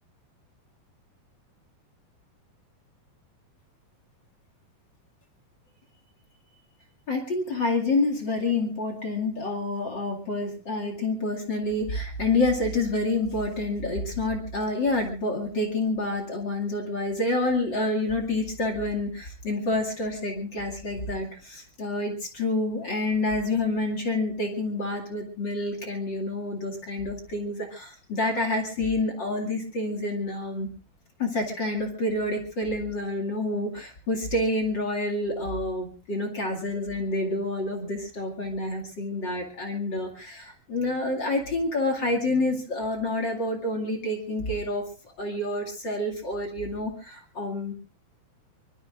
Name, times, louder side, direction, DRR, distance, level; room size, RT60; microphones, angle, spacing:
voice 1, 7.1-30.7 31.2-44.9 45.2-47.7, left 2 dB, 35° left, 4 dB, 2.4 m, -28 dB
24.0 x 22.5 x 2.5 m, 0.34 s
omnidirectional pair, 4.3 m